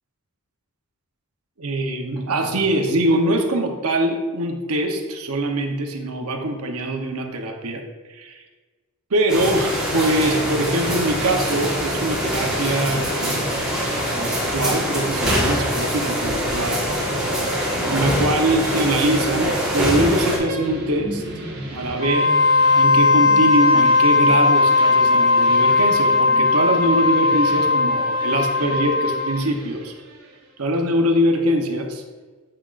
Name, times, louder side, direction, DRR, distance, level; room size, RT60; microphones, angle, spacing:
voice 1, 1.6-7.8 8.1-8.4 9.1-13.5 14.1-16.8 17.8-21.2 21.7-22.4 22.8-29.9 30.6-32.0, right 1 dB, 85° right, 3 dB, 0.9 m, -23 dB
sound 1, 9.3-20.4, equal, 5° right, 1.4 m, -24 dB
sound 2, 16.8-30.5, right 1 dB, 45° right, 1.2 m, -35 dB
Wind instrument woodwind instrument, 21.9-29.4, left 3 dB, 65° left, 1.6 m, -17 dB
7.6 x 5.8 x 2.5 m, 1.4 s
head